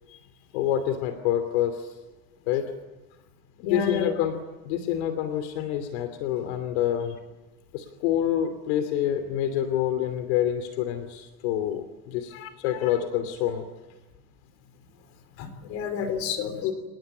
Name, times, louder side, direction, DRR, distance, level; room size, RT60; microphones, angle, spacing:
voice 1, 0.5-1.9 2.5-2.7 3.6-4.4 4.6-7.1 7.7-13.7 16.6-16.7, left 10 dB, 70° left, 9 dB, 2.9 m, -27 dB
voice 2, 3.6-4.1 12.3-12.5 12.8-12.9 15.4-16.7, left 7 dB, 45° left, 9 dB, 4.3 m, -30 dB
27.0 x 20.0 x 9.8 m, 1.1 s
cardioid pair, 175°, 35 cm